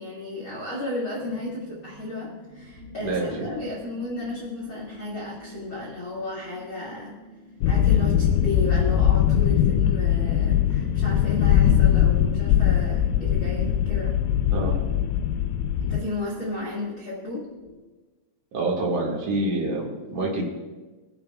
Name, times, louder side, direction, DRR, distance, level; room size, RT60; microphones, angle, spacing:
voice 1, 0.0-7.1 7.6-14.1 15.8-17.4, left 2 dB, 70° left, -4 dB, 1.2 m, -33 dB
sound 1, 1.2-17.7, right 1 dB, 25° left, 3.2 m, -45 dB
voice 2, 3.0-3.5 14.5-14.8 18.5-20.4, right 2 dB, 70° right, -3 dB, 1.4 m, -26 dB
sound 2, 7.6-16.0, left 10 dB, 90° left, 3.3 m, -21 dB
23.5 x 11.0 x 2.3 m, 1.2 s
omnidirectional pair, 6.0 m